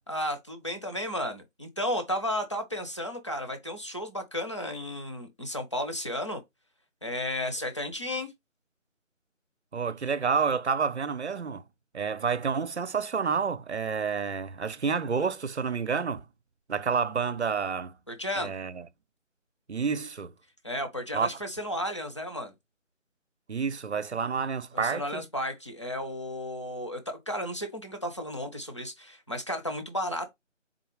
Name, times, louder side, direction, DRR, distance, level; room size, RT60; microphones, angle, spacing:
voice 1, 0.1-6.4 7.0-8.3 18.1-18.5 20.6-22.5 24.7-30.3, left 1 dB, 25° left, 0.9 m, -33 dB
voice 2, 9.7-11.7 11.9-16.3 16.7-18.0 18.4-18.9 19.7-20.3 21.1-21.4 23.5-25.3, right 6 dB, 60° right, 0.6 m, -29 dB
4.2 x 3.9 x 3.2 m
figure-of-eight pair, 165°, 38 cm